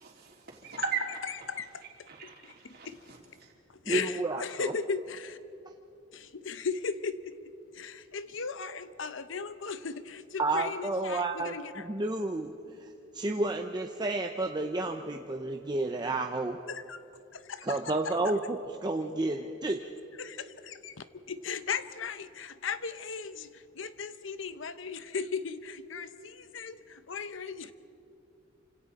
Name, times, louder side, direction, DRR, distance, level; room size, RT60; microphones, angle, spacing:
voice 1, 0.2-1.2 2.1-3.5, right 5 dB, 55° right, -1 dB, 3.4 m, -37 dB
voice 2, 1.2-1.8 2.4-3.0 3.8-5.4 6.1-11.9 16.7-17.0 17.3-17.8 18.0-18.3 20.2-27.7, left 5 dB, 75° left, 12 dB, 0.8 m, -37 dB
voice 3, 3.9-4.7 10.4-11.5 11.8-12.9 13.1-16.6 17.6-18.6 18.8-19.8, right 2 dB, 20° right, 3 dB, 0.7 m, -31 dB
28.5 x 26.0 x 4.2 m, 2.7 s
head